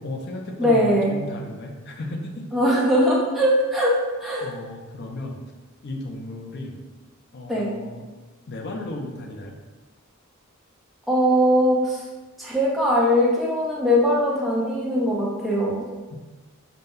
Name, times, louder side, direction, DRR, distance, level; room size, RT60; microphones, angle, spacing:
voice 1, 0.0-2.6 4.4-5.4 5.8-6.7 7.3-8.1 8.5-9.6 16.1-16.2, left 2 dB, 50° left, 2 dB, 0.5 m, -34 dB
voice 2, 0.6-1.2 2.5-4.5 7.5-7.7 11.1-12.0 12.4-15.8, equal, ahead, -6 dB, 0.6 m, -21 dB
4.0 x 2.2 x 3.5 m, 1.3 s
head